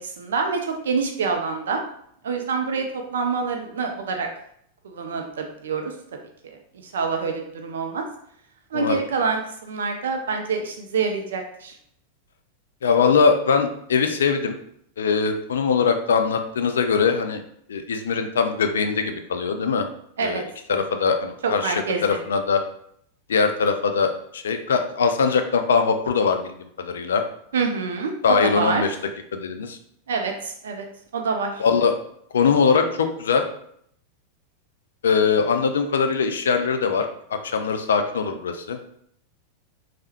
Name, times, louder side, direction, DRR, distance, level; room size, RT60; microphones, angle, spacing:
voice 1, 0.0-1.8 2.2-4.3 4.8-5.9 6.4-6.6 6.8-8.0 8.7-11.7 20.2-20.4 21.4-22.2 27.5-28.8 30.1-30.8 31.1-31.6, right 5 dB, 65° right, 3 dB, 0.3 m, -26 dB
voice 2, 12.8-14.6 15.0-17.4 17.7-19.9 20.2-20.4 20.7-21.7 22.0-22.6 23.3-27.2 28.2-28.9 29.3-29.8 31.6-31.9 32.3-33.4 35.0-38.8, left 5 dB, 65° left, 7 dB, 0.3 m, -21 dB
3.3 x 2.0 x 2.8 m, 0.68 s
figure-of-eight pair, 90°, 0 cm